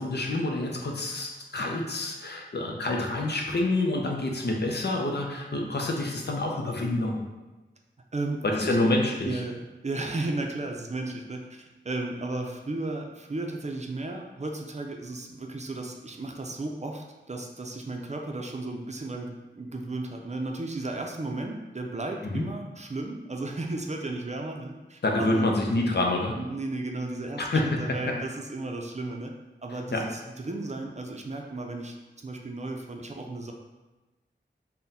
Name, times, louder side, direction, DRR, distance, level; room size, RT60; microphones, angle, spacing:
voice 1, 0.0-7.2 8.4-9.4 22.2-22.4 25.0-26.4 27.4-28.2 29.9-30.0, left 2 dB, 60° left, 0 dB, 0.6 m, -27 dB
voice 2, 8.1-8.8 9.2-25.4 26.4-27.4 27.8-29.3 29.6-32.0 32.2-33.5, right 2 dB, 35° right, 2 dB, 0.5 m, -34 dB
3.7 x 2.2 x 4.1 m, 1.1 s
wide cardioid pair, 60°, 19 cm